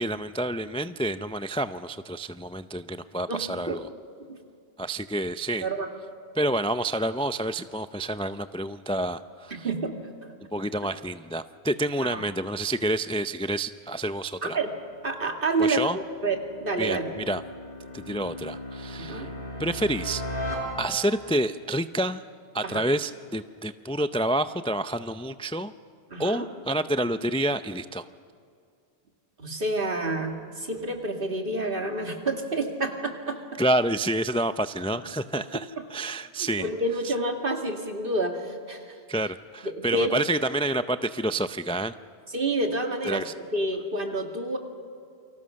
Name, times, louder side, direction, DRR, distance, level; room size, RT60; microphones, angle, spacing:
voice 1, 0.0-3.9 4.8-5.7 6.3-9.7 10.5-14.6 15.6-16.0 16.8-17.4 17.9-19.3 19.6-20.2 20.8-22.2 22.5-25.7 26.2-28.1 33.6-36.7 37.0-37.1 39.1-41.9 43.0-43.3, right 1 dB, 10° left, 11 dB, 0.3 m, -28 dB
voice 2, 3.3-3.8 4.3-4.4 5.6-5.9 9.6-9.9 12.1-12.2 14.4-14.7 15.0-17.1 19.0-19.3 22.6-22.8 26.1-26.5 29.4-33.6 36.4-39.0 39.8-40.1 42.3-43.2 43.5-44.6, right 2 dB, 55° right, 3 dB, 2.6 m, -29 dB
sound 1, 14.9-21.3, left 1 dB, 55° left, 4.7 m, -37 dB
29.0 x 25.0 x 6.4 m, 2.3 s
omnidirectional pair, 1.1 m